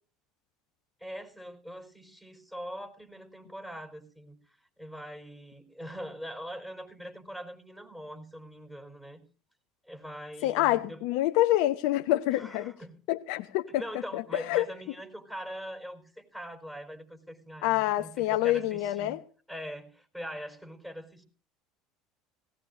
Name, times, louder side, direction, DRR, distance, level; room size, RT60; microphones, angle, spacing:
voice 1, 1.0-9.2 9.8-11.0 12.3-12.9 13.7-19.1 19.5-21.2, equal, 5° right, 5 dB, 4.3 m, -42 dB
voice 2, 10.4-12.7 13.1-13.8 14.1-14.7 17.6-19.2, left 15 dB, 65° left, 10 dB, 0.7 m, -27 dB
18.0 x 18.0 x 2.6 m, 0.41 s
hypercardioid pair, 70°, 0 cm